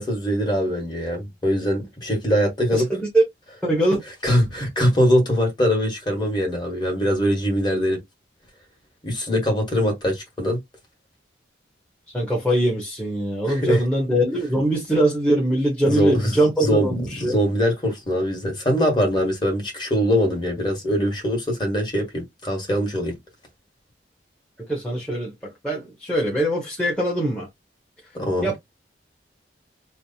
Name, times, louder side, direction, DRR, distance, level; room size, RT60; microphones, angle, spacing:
voice 1, 0.0-2.9 4.2-8.0 9.0-10.6 13.4-13.8 15.8-23.1 28.1-28.5, equal, 25° left, 1.6 m, -22 dB
voice 2, 2.7-3.2 3.6-4.0 12.1-17.3 24.7-25.3 25.6-27.5 28.4-28.6, right 1 dB, 5° left, 1.1 m, -22 dB
3.2 x 2.1 x 4.1 m
head